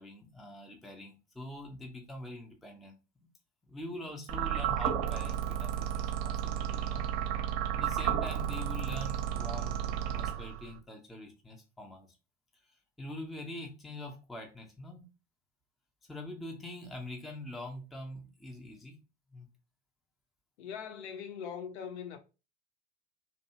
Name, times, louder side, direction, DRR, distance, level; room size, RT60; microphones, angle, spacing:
voice 1, 0.0-3.0 3.7-7.1 7.7-12.2 13.0-15.1 16.1-18.9 19.3-19.5, left 1 dB, ahead, 0.4 m, -44 dB
sound 1, 4.3-10.8, right 10 dB, 45° right, 0.6 m, -32 dB
voice 2, 20.6-22.2, left 7 dB, 65° left, 0.6 m, -41 dB
2.6 x 2.2 x 2.7 m
figure-of-eight pair, 80°, 36 cm